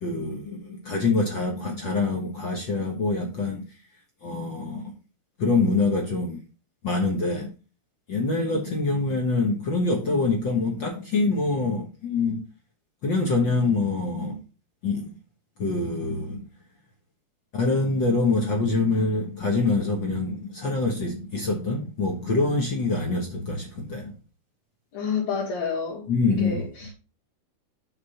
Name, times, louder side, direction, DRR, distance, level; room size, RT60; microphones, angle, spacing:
voice 1, 0.0-3.7 4.2-4.9 5.4-6.4 6.8-7.5 8.1-12.5 13.0-14.4 14.8-15.1 15.6-16.5 17.5-24.1 26.1-26.6, left 3 dB, 50° left, 1.6 m, -25 dB
voice 2, 24.9-26.0 26.4-26.9, left 5 dB, 70° left, 3.1 m, -29 dB
6.9 x 4.7 x 5.6 m
omnidirectional pair, 3.4 m